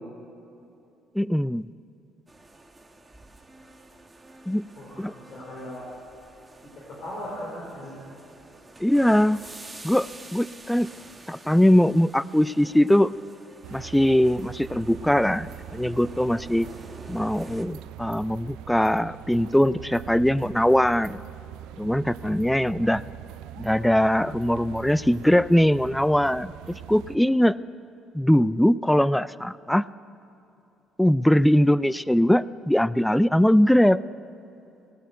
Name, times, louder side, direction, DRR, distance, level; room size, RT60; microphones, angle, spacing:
voice 1, 1.2-1.7 4.5-4.6 5.0-5.1 8.8-9.4 9.8-10.9 11.3-13.1 13.7-16.7 17.1-21.2 21.8-23.0 23.6-27.6 28.1-29.8 31.0-34.0, equal, 5° left, 19 dB, 0.3 m, -21 dB
sound 1, 2.3-17.7, right 2 dB, 20° right, 1.5 m, -47 dB
voice 2, 4.7-5.9 6.7-8.0 22.5-22.9, left 1 dB, 60° left, -5 dB, 4.2 m, -38 dB
sound 2, 13.6-27.2, right 12 dB, 80° right, 0.4 m, -42 dB
18.5 x 9.2 x 7.9 m, 2.8 s
supercardioid pair, 65°, 0 cm